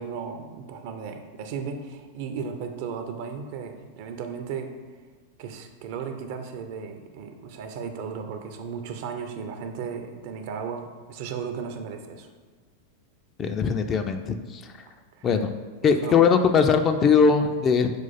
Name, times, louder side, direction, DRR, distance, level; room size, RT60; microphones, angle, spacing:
voice 1, 0.0-4.7 5.4-12.3 15.2-15.3 15.8-16.3, right 6 dB, 50° right, 6 dB, 0.5 m, -35 dB
voice 2, 13.4-14.6 15.2-15.5 15.8-18.0, left 6 dB, 25° left, 7 dB, 0.3 m, -20 dB
5.6 x 2.4 x 3.9 m, 1.5 s
figure-of-eight pair, 90°, 0 cm